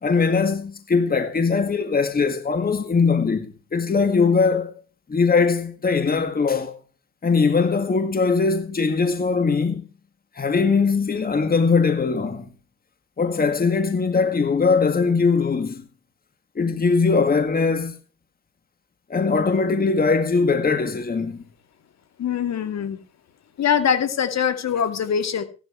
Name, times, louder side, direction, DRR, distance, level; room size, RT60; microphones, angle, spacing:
voice 1, 0.0-4.7 5.1-6.7 7.2-9.8 10.4-12.5 13.2-15.8 16.6-18.0 19.1-21.4, left 4 dB, 30° left, 1.9 m, -21 dB
voice 2, 22.2-23.0 23.6-25.4, left 8 dB, 60° left, 2.5 m, -23 dB
16.0 x 11.5 x 4.5 m
cardioid pair, 90°, 30 cm